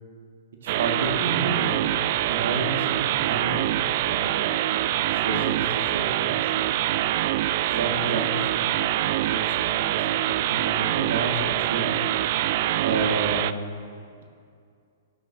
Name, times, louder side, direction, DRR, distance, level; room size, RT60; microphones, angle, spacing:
voice 1, 0.6-1.9 2.3-4.7 5.1-6.7 7.5-8.7 9.2-11.3 11.6-12.0 12.8-13.5, right 3 dB, 75° right, 2 dB, 1.9 m, -31 dB
sound 1, 0.7-13.5, right 13 dB, 50° right, 0.3 m, -25 dB
19.0 x 10.5 x 2.9 m, 2.3 s
hypercardioid pair, 130°, 0 cm